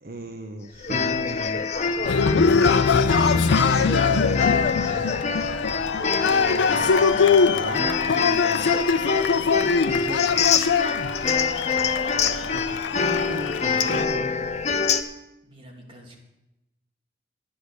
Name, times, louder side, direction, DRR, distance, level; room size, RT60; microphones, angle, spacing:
voice 1, 0.0-1.7 3.2-4.7 6.3-8.7 9.5-10.4 12.1-14.5, right 1 dB, 55° right, 4 dB, 0.8 m, -37 dB
sound 1, 0.8-15.0, left 5 dB, 35° left, 0.6 m, -26 dB
Cheering, 2.1-14.1, left 5 dB, 85° left, 0.5 m, -22 dB
voice 2, 15.4-16.2, right 1 dB, 30° right, -1 dB, 2.3 m, -47 dB
9.9 x 9.6 x 6.5 m, 0.94 s
head